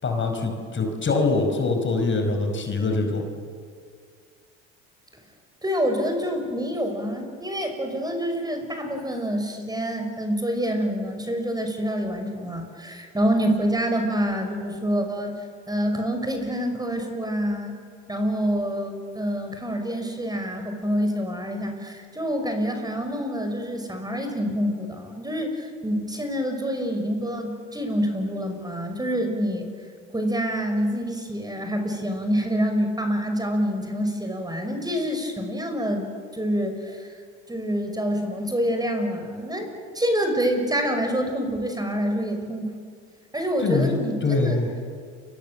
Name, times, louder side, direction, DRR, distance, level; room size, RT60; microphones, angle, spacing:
voice 1, 0.0-3.2 43.6-44.0 44.2-44.7, left 3 dB, 35° left, 5 dB, 5.4 m, -23 dB
voice 2, 5.6-15.4 15.7-17.8 18.1-29.7 30.1-36.1 36.3-37.1 37.5-39.7 39.9-42.7 43.3-44.6, equal, 10° right, 5 dB, 5.9 m, -26 dB
29.5 x 25.0 x 7.7 m, 2.1 s
hypercardioid pair, 70°, 33 cm